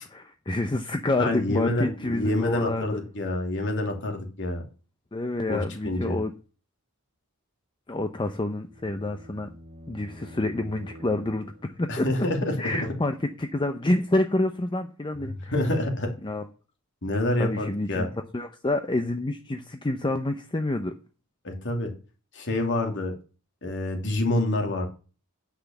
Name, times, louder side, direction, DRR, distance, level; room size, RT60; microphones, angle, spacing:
voice 1, 0.5-3.0 5.1-6.3 7.9-9.5 9.9-12.1 12.6-15.5 16.2-16.5 17.4-18.1 18.3-20.9, left 2 dB, 20° left, 7 dB, 0.6 m, -28 dB
voice 2, 1.2-4.6 5.5-6.2 11.9-12.5 15.2-16.1 17.0-18.1 21.4-21.9 22.3-23.1 23.6-24.9, left 1 dB, 55° left, 3 dB, 2.8 m, -27 dB
sound 1, 8.1-12.0, equal, 40° right, 1.8 m, -47 dB
10.0 x 6.1 x 7.1 m, 0.36 s
head